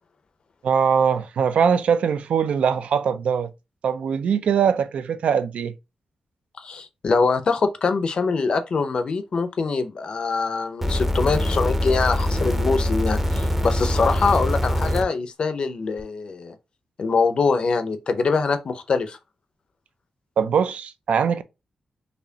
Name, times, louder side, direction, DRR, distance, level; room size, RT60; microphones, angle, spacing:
voice 1, 0.6-3.5 3.8-5.7 20.4-21.4, right 7 dB, 80° right, 0.4 m, -21 dB
voice 2, 6.6-16.6 17.0-19.2, left 4 dB, 45° left, 0.6 m, -23 dB
sound 1, 10.8-15.0 16.0-16.1, left 1 dB, 10° right, 0.6 m, -23 dB
4.2 x 3.0 x 2.7 m
wide cardioid pair, 160°, 2 cm